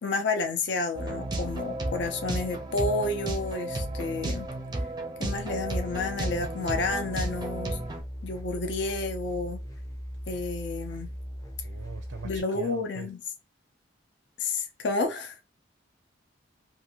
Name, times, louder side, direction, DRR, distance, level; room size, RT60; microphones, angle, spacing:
voice 1, 0.0-4.5 5.2-7.8 8.2-9.6 10.3-11.1 12.2-13.2 14.4-15.4, left 3 dB, 65° left, 0.5 m, -30 dB
sound 1, 0.9-8.0, right 1 dB, 25° right, 0.4 m, -33 dB
sound 2, 5.4-12.4, equal, 20° left, 0.7 m, -39 dB
voice 2, 11.6-13.1, right 4 dB, 80° right, 0.4 m, -41 dB
2.5 x 2.5 x 2.8 m
head